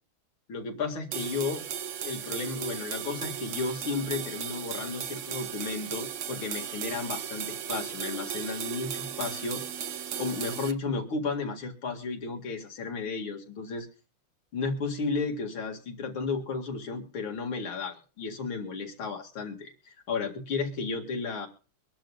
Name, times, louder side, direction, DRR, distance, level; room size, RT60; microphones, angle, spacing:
voice 1, 0.5-1.6 2.0-9.6 10.2-13.9 14.5-21.5, left 4 dB, 75° left, 2 dB, 2.9 m, -33 dB
sound 1, 1.1-10.7, right 9 dB, 75° right, 0.7 m, -36 dB
24.0 x 11.5 x 2.4 m, 0.40 s
omnidirectional pair, 2.3 m